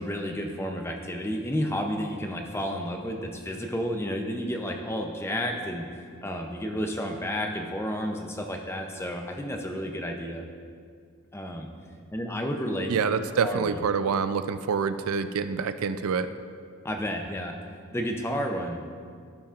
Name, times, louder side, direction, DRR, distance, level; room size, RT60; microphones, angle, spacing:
voice 1, 0.0-10.4 11.3-11.7 12.1-12.9 13.4-13.8 16.8-17.5 17.9-18.8, equal, 10° left, 3 dB, 0.5 m, -31 dB
voice 2, 12.9-16.3, right 6 dB, 75° right, 11 dB, 0.4 m, -26 dB
14.0 x 5.8 x 2.5 m, 2.2 s
head